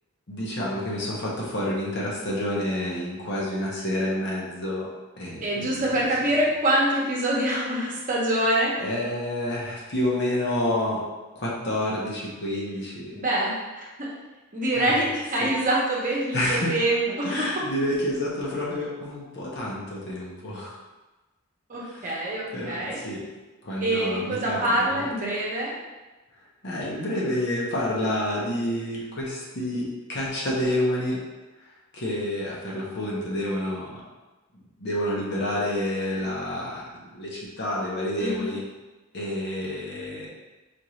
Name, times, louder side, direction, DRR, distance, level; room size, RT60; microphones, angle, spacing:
voice 1, 0.3-4.9 5.2-5.9 8.8-11.0 11.3-13.2 14.7-15.0 15.4-15.5 16.3-16.8 17.2-20.7 21.8-22.1 22.5-23.3 23.6-25.1 26.6-31.2 31.9-34.0 34.8-38.6 39.1-40.3, left 1 dB, 55° left, -5 dB, 0.9 m, -29 dB
voice 2, 5.4-8.8 13.1-14.1 14.5-17.3 21.7-23.0 23.8-25.7 38.2-38.5, right 1 dB, 40° right, -5 dB, 0.9 m, -25 dB
4.2 x 2.6 x 3.1 m, 1.2 s
head